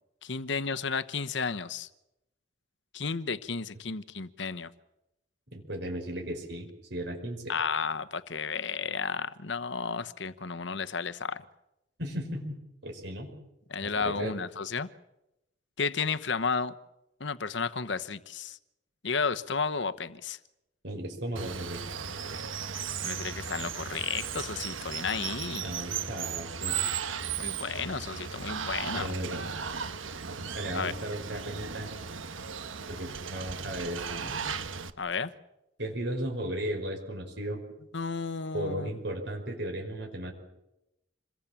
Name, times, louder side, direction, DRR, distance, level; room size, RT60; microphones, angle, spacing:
voice 1, 0.2-1.9 2.9-4.7 7.5-11.4 13.7-14.9 15.8-16.7 17.2-18.6 19.0-20.4 23.0-25.8 27.4-29.1 30.7-30.9 35.0-35.3 37.9-38.9, left 5 dB, 65° left, 1.0 m, -32 dB
voice 2, 5.5-7.5 12.0-12.6 12.8-13.3 13.8-14.3 20.8-21.8 25.6-26.8 28.9-29.4 30.6-31.9 32.8-34.4 35.8-37.6 38.5-40.3, right 1 dB, 60° right, 5.3 m, -35 dB
Water, 21.4-34.9, right 6 dB, 85° right, 1.4 m, -36 dB
27.5 x 22.0 x 7.4 m
head